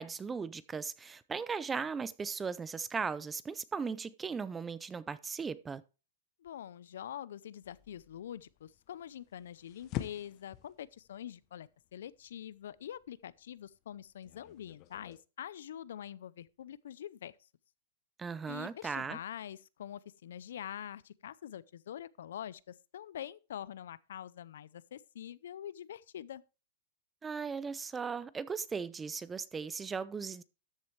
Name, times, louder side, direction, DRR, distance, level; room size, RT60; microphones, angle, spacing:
voice 1, 0.0-5.8 18.2-19.2 27.2-30.4, right 5 dB, 10° right, 0.4 m, -37 dB
voice 2, 6.4-17.4 18.5-26.4, left 10 dB, 80° left, 0.5 m, -45 dB
sound 1, 7.6-15.2, left 14 dB, 35° left, 0.8 m, -47 dB
13.0 x 7.5 x 3.2 m
supercardioid pair, 155°, 0 cm